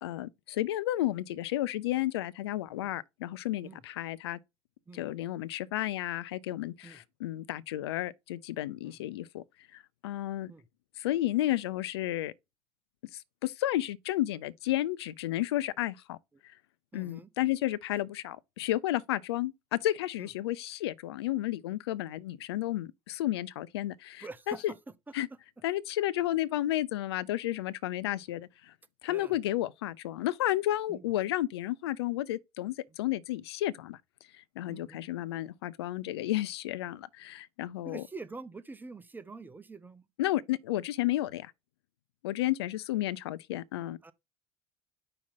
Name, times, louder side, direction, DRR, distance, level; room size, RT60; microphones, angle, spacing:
voice 1, 0.0-4.4 4.9-9.4 9.7-10.5 11.0-12.3 13.1-16.2 16.9-24.7 25.1-25.3 25.6-28.7 29.0-34.0 34.6-38.0 40.2-41.5 42.2-44.0, left 14 dB, 75° left, 0.5 m, -32 dB
voice 2, 16.9-17.3 20.2-20.3 24.2-24.8 29.1-29.3 30.9-31.1 34.7-35.0 37.8-40.1 44.0-44.1, right 3 dB, 15° right, 0.9 m, -45 dB
5.5 x 4.2 x 4.1 m
hypercardioid pair, 70°, 14 cm